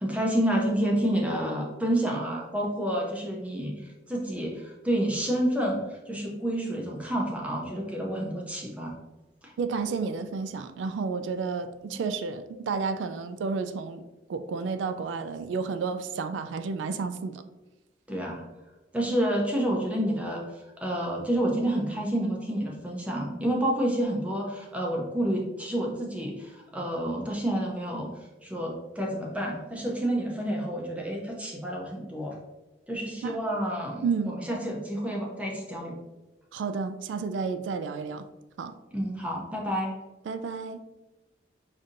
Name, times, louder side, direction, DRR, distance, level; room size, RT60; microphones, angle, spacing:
voice 1, 0.0-9.0 9.4-9.5 18.1-18.4 18.9-28.1 28.4-32.4 32.9-36.0 38.9-39.9, right 1 dB, 5° right, 0.5 m, -29 dB
voice 2, 9.6-17.4 33.2-33.4 34.0-34.4 36.5-38.3 38.6-38.8 40.3-40.8, right 5 dB, 80° right, 0.3 m, -31 dB
5.1 x 2.7 x 2.5 m
head